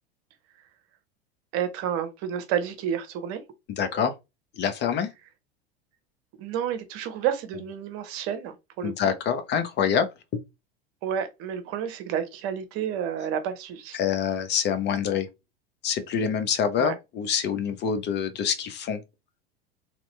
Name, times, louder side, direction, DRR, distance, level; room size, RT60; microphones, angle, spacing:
voice 1, 1.5-3.4 6.4-8.9 11.0-14.0 16.8-16.9, right 9 dB, 50° right, 0.9 m, -30 dB
voice 2, 3.7-4.1 4.5-5.1 8.8-10.1 13.9-15.3 15.8-19.0, left 7 dB, 35° left, 0.7 m, -26 dB
2.9 x 2.6 x 3.2 m
hypercardioid pair, 85°, 30 cm